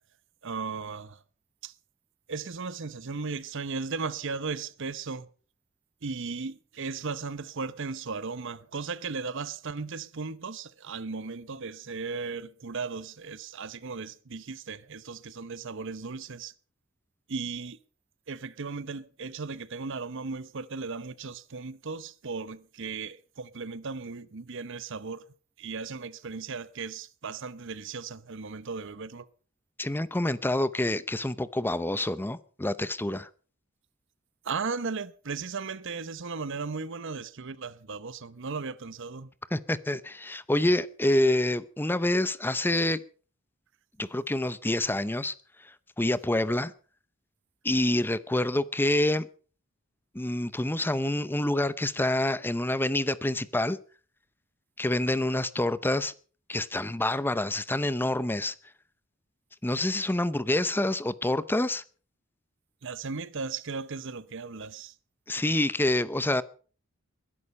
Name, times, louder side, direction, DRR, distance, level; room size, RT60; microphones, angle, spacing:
voice 1, 0.4-1.2 1.6-1.7 2.3-5.3 6.0-16.5 17.3-17.8 18.3-25.2 25.6-29.3 34.4-39.3 62.8-64.9, right 4 dB, 60° right, 0.8 m, -36 dB
voice 2, 29.8-33.3 39.5-43.0 44.0-45.3 46.0-46.7 47.6-49.3 50.1-53.8 54.8-56.1 56.5-58.5 59.6-61.8 65.3-66.4, left 1 dB, 10° left, 0.7 m, -27 dB
21.0 x 11.0 x 5.4 m
head